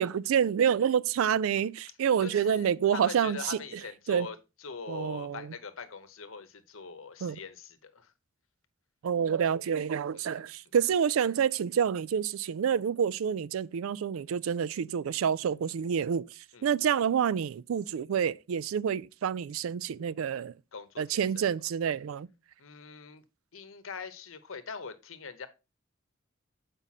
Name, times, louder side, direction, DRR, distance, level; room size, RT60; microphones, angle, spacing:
voice 1, 0.0-3.6 4.1-4.3 4.9-5.5 7.2-7.4 9.0-20.5 21.0-22.3, right 8 dB, 90° right, 0.4 m, -28 dB
voice 2, 2.2-8.1 10.2-10.3 16.5-16.7 20.7-21.0 21.4-21.5 22.6-23.2 23.5-25.5, left 5 dB, 80° left, 0.9 m, -42 dB
7.2 x 5.2 x 4.1 m
head